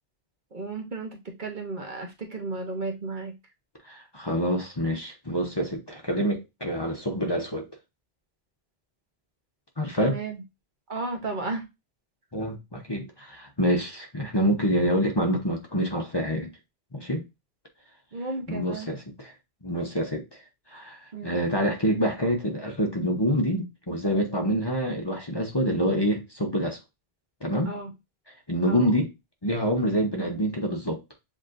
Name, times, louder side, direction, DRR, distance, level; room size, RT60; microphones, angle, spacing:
voice 1, 0.5-3.4 10.0-10.4 10.9-11.6 18.1-18.9 21.1-21.4 27.6-27.9 28.6-28.9, right 3 dB, 50° right, 1.1 m, -34 dB
voice 2, 3.8-7.7 9.8-10.2 12.3-16.5 16.9-17.2 18.5-19.3 19.6-20.4 20.7-26.8 27.4-27.7 28.5-29.1 29.4-31.0, equal, 25° left, 0.9 m, -26 dB
7.2 x 2.9 x 2.5 m
omnidirectional pair, 1.1 m